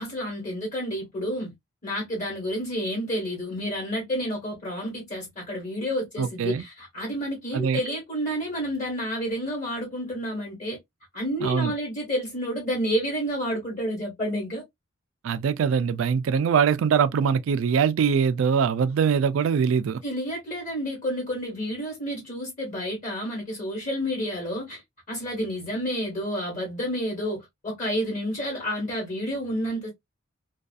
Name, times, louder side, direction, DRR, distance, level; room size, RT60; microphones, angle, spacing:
voice 1, 0.0-1.5 1.8-10.8 11.1-14.6 20.0-24.8 25.1-29.9, equal, 40° left, 1.2 m, -30 dB
voice 2, 6.2-6.6 7.5-7.8 11.4-11.7 15.2-20.0, right 6 dB, 65° right, 0.3 m, -23 dB
2.5 x 2.3 x 2.3 m
head